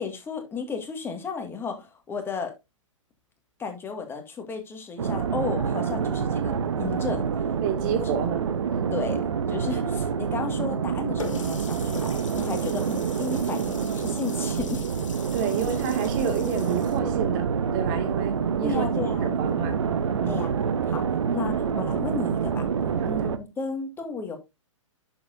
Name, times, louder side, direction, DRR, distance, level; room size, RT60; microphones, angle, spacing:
voice 1, 0.0-2.5 3.6-7.5 8.1-8.2 8.9-9.2 9.5-14.9 18.6-19.3 20.3-20.5 20.9-21.0 21.3-22.7 23.0-24.4, left 5 dB, 15° left, 1.9 m, -33 dB
sound 1, 5.0-23.4, right 6 dB, 60° right, 1.0 m, -27 dB
voice 2, 7.6-8.5 15.3-18.8 19.2-19.8 20.2-20.4, right 7 dB, 35° right, 2.2 m, -29 dB
Water tap faucet, 11.2-17.0, left 5 dB, 70° left, 2.1 m, -42 dB
10.5 x 7.0 x 2.6 m
figure-of-eight pair, 115°, 17 cm